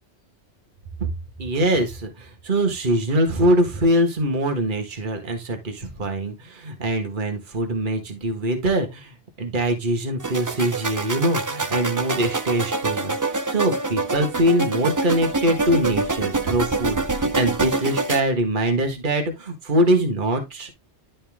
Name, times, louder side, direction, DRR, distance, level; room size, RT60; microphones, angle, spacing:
voice 1, 1.4-20.7, right 1 dB, 45° right, 1.7 m, -23 dB
sound 1, 10.2-18.2, right 3 dB, 25° right, 0.5 m, -26 dB
11.5 x 4.2 x 3.6 m
omnidirectional pair, 1.2 m